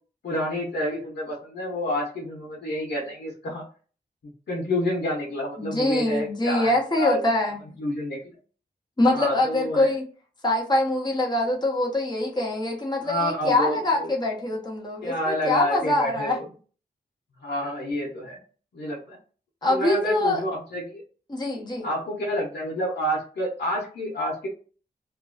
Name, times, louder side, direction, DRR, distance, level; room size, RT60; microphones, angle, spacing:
voice 1, 0.2-3.6 4.5-7.2 7.8-8.2 9.1-9.9 13.0-14.1 15.0-16.4 17.4-18.4 18.7-19.2 19.7-21.0 21.8-24.5, left 1 dB, 85° left, -3 dB, 0.7 m, -29 dB
voice 2, 5.6-7.6 9.0-10.1 10.4-16.4 19.6-20.4 21.3-21.9, left 2 dB, 25° left, -2 dB, 1.0 m, -24 dB
2.5 x 2.2 x 2.4 m, 0.38 s
wide cardioid pair, 75°, 17 cm